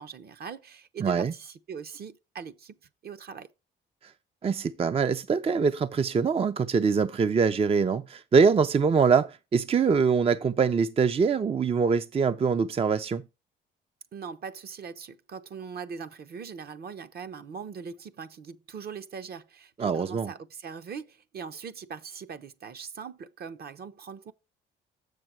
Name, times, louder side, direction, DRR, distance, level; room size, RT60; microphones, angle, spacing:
voice 1, 0.0-2.8 3.0-3.5 14.1-24.3, right 6 dB, 50° right, 0.9 m, -41 dB
voice 2, 1.0-1.3 4.0-4.1 4.4-13.2 19.8-20.3, right 5 dB, 30° right, 0.5 m, -24 dB
7.2 x 6.5 x 4.5 m
cardioid pair, 90°, 20 cm